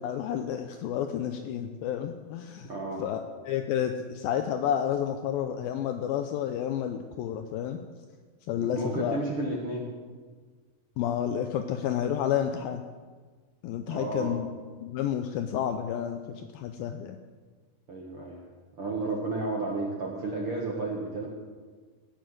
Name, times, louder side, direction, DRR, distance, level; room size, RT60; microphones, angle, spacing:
voice 1, 0.0-2.7 3.0-7.8 8.5-9.2 11.0-12.8 13.6-14.5 14.8-17.2, left 9 dB, 80° left, 7 dB, 2.2 m, -30 dB
voice 2, 2.7-3.0 8.7-9.8 13.9-14.4 17.9-18.4 18.8-21.3, right 2 dB, 60° right, -2 dB, 1.5 m, -32 dB
18.0 x 6.9 x 7.7 m, 1.5 s
omnidirectional pair, 4.6 m